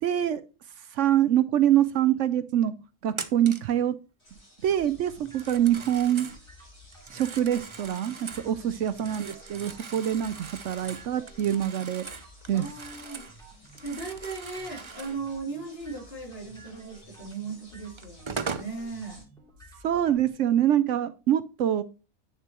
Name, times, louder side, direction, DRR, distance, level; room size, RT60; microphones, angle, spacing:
voice 1, 0.0-0.4 0.9-2.8 3.0-4.0 4.6-6.3 7.1-12.1 12.5-12.6 19.8-21.8, right 11 dB, 70° right, 0.9 m, -25 dB
Telephone, 3.1-3.7 5.3-6.4 6.9-8.5 8.9-13.4 13.6-15.2 17.3-17.4 18.0-18.7, right 5 dB, 35° right, 0.5 m, -40 dB
sound 1, 4.2-19.2, left 1 dB, 75° left, 5.9 m, -55 dB
sound 2, 4.6-20.3, right 1 dB, 5° left, 2.9 m, -52 dB
voice 2, 12.5-13.3 13.8-19.2, right 4 dB, 45° left, 3.1 m, -37 dB
8.9 x 6.7 x 3.0 m
omnidirectional pair, 1.4 m